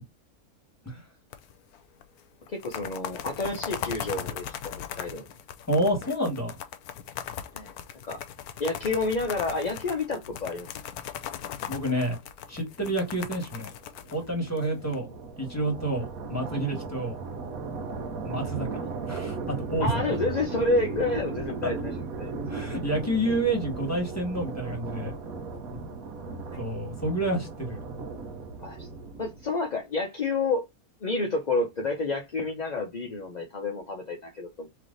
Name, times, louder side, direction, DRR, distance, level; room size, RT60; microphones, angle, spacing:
sound 1, 1.3-1.8 2.0-2.1 2.5-15.0, left 9 dB, 85° left, 1.1 m, -38 dB
voice 1, 2.5-5.2 7.5-7.7 8.0-8.2 8.6-10.7 19.8-22.4 28.6-28.9 29.2-30.7 31.0-34.7, left 3 dB, 40° left, 0.7 m, -29 dB
voice 2, 5.7-6.6 11.7-12.2 12.5-13.7 14.1-15.1 15.4-17.2 18.2-20.0 21.6-21.7 22.4-25.1 26.6-27.8, right 1 dB, 10° left, 1.6 m, -29 dB
sound 2, 13.4-29.6, right 4 dB, 70° right, 1.3 m, -36 dB
3.3 x 3.3 x 3.9 m
omnidirectional pair, 1.6 m